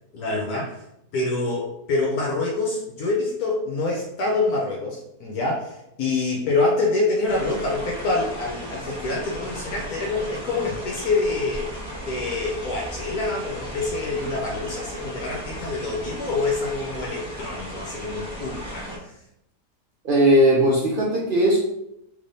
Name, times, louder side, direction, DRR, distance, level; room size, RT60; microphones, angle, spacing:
voice 1, 0.1-0.8 1.1-19.2, left 3 dB, 70° left, -2 dB, 1.1 m, -26 dB
sound 1, 7.3-19.0, equal, 5° right, 0.8 m, -36 dB
voice 2, 20.0-21.6, right 1 dB, 80° right, -4 dB, 0.4 m, -18 dB
3.4 x 3.2 x 2.6 m, 0.79 s
omnidirectional pair, 1.7 m